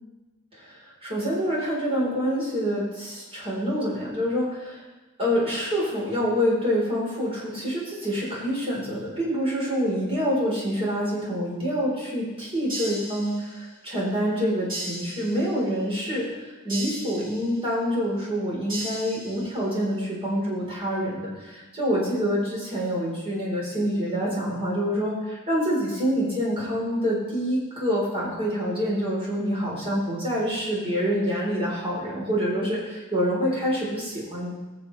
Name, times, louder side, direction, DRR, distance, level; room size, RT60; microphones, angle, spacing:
voice 1, 0.6-4.8 5.2-34.5, equal, 25° right, -5 dB, 4.3 m, -26 dB
sound 1, 12.7-13.8 14.7-15.7 16.7-17.7 18.7-19.7, right 1 dB, 65° right, 3.9 m, -37 dB
21.0 x 7.0 x 3.4 m, 1.2 s
head